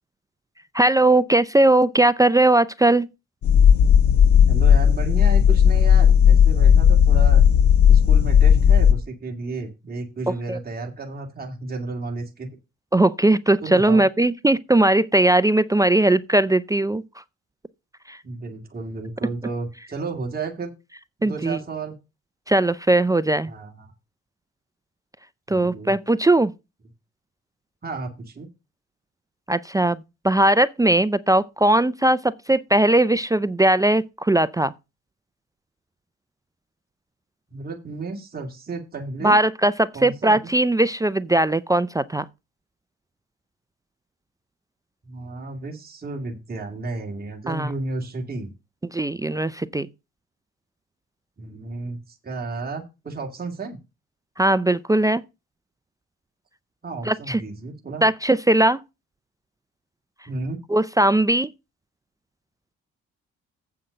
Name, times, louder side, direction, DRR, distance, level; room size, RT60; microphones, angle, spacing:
voice 1, 0.7-3.1 10.5-10.6 12.9-17.0 18.1-18.2 21.2-21.6 22.5-23.5 25.5-26.5 29.5-34.7 39.2-42.3 47.5-47.7 48.9-49.9 54.4-55.2 57.0-57.4 58.0-58.8 60.7-61.5, right 1 dB, 10° right, 0.4 m, -19 dB
sound 1, 3.4-8.9, left 8 dB, 70° left, 1.2 m, -14 dB
voice 2, 4.5-7.5 7.9-12.5 13.6-14.0 18.2-20.7 21.2-22.0 23.5-23.9 25.5-25.9 27.8-28.5 37.5-39.4 39.9-40.4 45.0-48.5 51.4-53.8 56.8-58.1 60.3-60.6, right 3 dB, 30° right, 2.5 m, -33 dB
8.1 x 5.8 x 6.4 m
cardioid pair, 90°, 30 cm